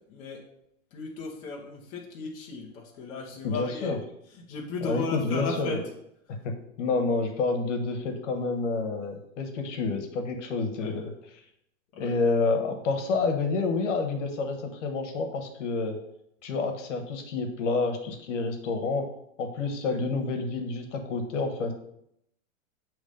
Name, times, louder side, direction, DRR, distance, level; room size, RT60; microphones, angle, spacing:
voice 1, 0.1-0.4 0.9-4.0 4.5-5.9 10.8-11.0 11.9-12.1 19.9-20.0, left 3 dB, 20° left, -3 dB, 0.6 m, -36 dB
voice 2, 3.4-4.0 4.8-5.8 6.3-11.4 12.0-16.0 16.4-19.1 19.4-21.7, left 3 dB, 60° left, 5 dB, 1.2 m, -29 dB
7.1 x 3.2 x 5.1 m, 0.76 s
supercardioid pair, 160°, 40 cm